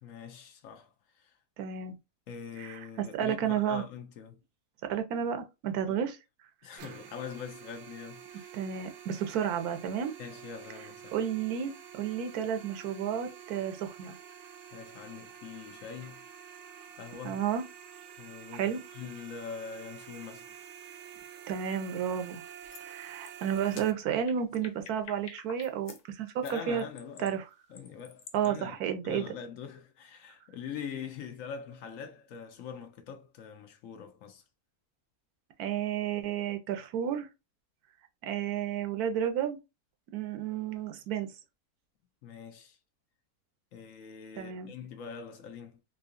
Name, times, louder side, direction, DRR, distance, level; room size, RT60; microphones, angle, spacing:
voice 1, 0.0-1.4 2.3-4.4 5.9-6.0 6.6-8.6 10.2-11.2 14.7-16.2 17.0-17.4 18.2-20.5 26.4-27.4 27.7-34.4 42.2-42.8 43.7-45.8, left 7 dB, 65° left, 1.0 m, -43 dB
voice 2, 1.6-2.0 2.6-2.8 3.1-3.8 4.9-6.2 8.5-10.1 11.1-14.2 17.2-17.6 18.5-18.8 21.5-22.4 22.8-26.8 27.2-27.4 28.3-29.3 35.6-37.3 38.2-39.6 40.1-41.3 44.4-44.7, right 8 dB, 80° right, 1.2 m, -32 dB
sound 1, 6.8-23.9, right 9 dB, 65° right, 0.8 m, -49 dB
sound 2, 22.3-22.4 22.7-22.9 23.2-26.0 26.4-28.5, left 7 dB, 80° left, 1.3 m, -49 dB
3.7 x 2.7 x 2.4 m
omnidirectional pair, 1.6 m